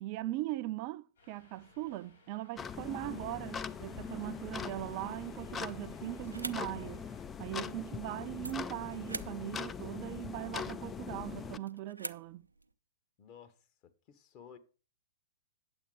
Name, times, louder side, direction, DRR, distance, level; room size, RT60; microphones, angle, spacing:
voice 1, 0.0-7.1 7.4-12.5, right 16 dB, 40° right, 0.4 m, -40 dB
Subway metro underground, 1.2-7.2, left 3 dB, 75° left, 4.9 m, -63 dB
sound 1, 2.6-11.6, left 6 dB, 20° left, 0.4 m, -42 dB
sound 2, 6.0-12.7, right 2 dB, 85° right, 0.6 m, -48 dB
voice 2, 13.2-13.6 13.8-14.6, left 8 dB, 35° left, 1.3 m, -54 dB
9.6 x 7.4 x 4.9 m
figure-of-eight pair, 110°, 0 cm